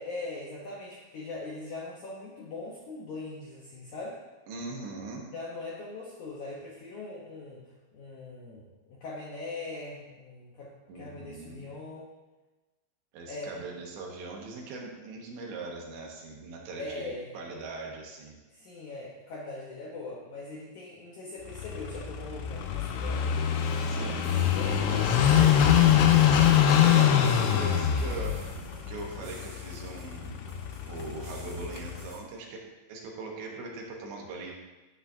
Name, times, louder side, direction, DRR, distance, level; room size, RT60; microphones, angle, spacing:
voice 1, 0.0-4.2 5.2-12.1 13.3-13.5 16.8-17.3 18.5-23.2 23.9-25.1, left 2 dB, 70° left, -4 dB, 1.8 m, -41 dB
voice 2, 4.5-5.3 10.9-11.6 13.1-18.4 23.8-24.2 24.8-28.4 28.9-30.4 30.9-32.6 32.9-34.5, right 3 dB, 85° right, -1 dB, 3.5 m, -40 dB
Car passing by / Idling, 21.5-32.2, left 9 dB, 90° left, 2.8 m, -24 dB
sound 1, 24.2-32.2, right 2 dB, 55° right, 0.8 m, -47 dB
10.0 x 9.0 x 2.7 m, 1.2 s
omnidirectional pair, 4.9 m